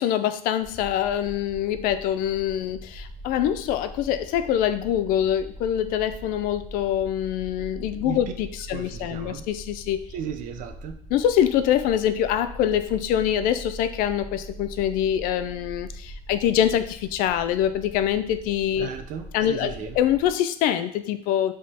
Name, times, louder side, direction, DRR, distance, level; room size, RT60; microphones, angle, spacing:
voice 1, 0.0-10.0 11.1-18.9 19.3-21.5, left 10 dB, 90° left, 10 dB, 0.4 m, -24 dB
sound 1, 0.6-20.3, equal, 45° left, 1.2 m, -42 dB
voice 2, 8.7-9.4 10.1-11.0 18.8-20.0, right 8 dB, 70° right, 7 dB, 0.5 m, -35 dB
5.0 x 3.6 x 2.8 m, 0.64 s
cardioid pair, 150°, 14 cm